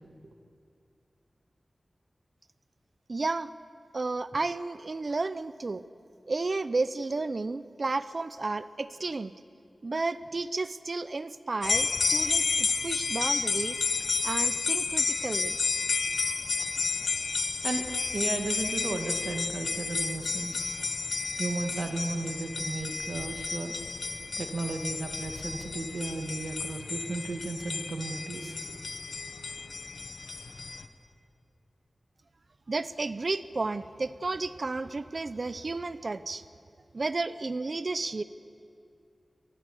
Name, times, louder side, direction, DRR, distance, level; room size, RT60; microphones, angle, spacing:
voice 1, 3.1-3.5 3.9-5.8 6.3-9.3 9.8-13.8 14.2-15.6 32.7-36.4 36.9-38.2, right 3 dB, 50° right, 15 dB, 0.6 m, -32 dB
sound 1, 11.6-30.9, left 4 dB, 90° left, 1.1 m, -31 dB
voice 2, 18.1-20.7 21.4-23.7 24.4-28.8, right 3 dB, 75° right, 5 dB, 1.8 m, -34 dB
24.5 x 19.5 x 7.1 m, 2.5 s
wide cardioid pair, 90°, 0 cm